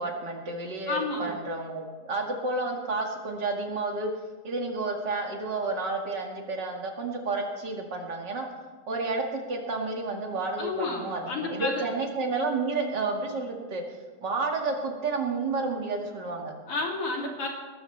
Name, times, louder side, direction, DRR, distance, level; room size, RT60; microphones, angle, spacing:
voice 1, 0.0-4.1 4.4-8.5 8.9-13.8 14.2-16.5, right 3 dB, 40° right, 1 dB, 2.3 m, -31 dB
voice 2, 0.9-1.3 10.6-11.9 16.7-17.5, left 3 dB, 50° left, -1 dB, 3.7 m, -31 dB
20.0 x 13.5 x 3.3 m, 1.4 s
omnidirectional pair, 3.5 m